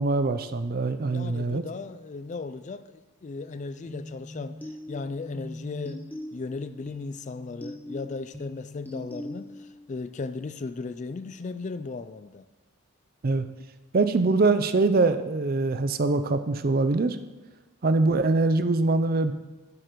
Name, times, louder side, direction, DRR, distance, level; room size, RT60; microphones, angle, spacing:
voice 1, 0.0-1.6 13.2-13.4 13.9-17.2 17.8-19.3, right 3 dB, 40° right, 11 dB, 0.5 m, -23 dB
voice 2, 1.1-6.0 6.3-12.5, left 3 dB, 35° left, 12 dB, 0.3 m, -36 dB
sound 1, 3.9-9.8, left 1 dB, 10° left, 0.7 m, -41 dB
11.0 x 6.0 x 5.1 m, 1.1 s
head